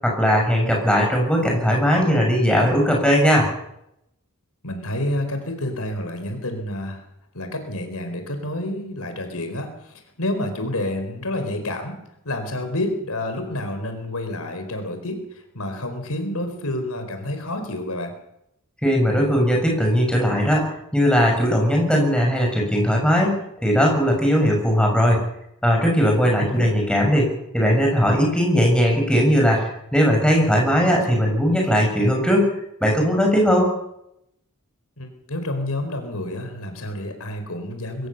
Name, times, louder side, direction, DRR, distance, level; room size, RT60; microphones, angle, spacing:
voice 1, 0.0-3.5 18.8-20.7 20.9-23.3 23.6-25.2 25.6-32.5 32.8-33.7, equal, 5° left, 0 dB, 7.0 m, -19 dB
voice 2, 4.6-7.0 7.3-12.0 12.2-18.1 26.2-26.7 30.7-31.2 35.0-38.1, left 1 dB, 80° left, 6 dB, 4.5 m, -29 dB
22.5 x 18.0 x 7.1 m, 0.79 s
head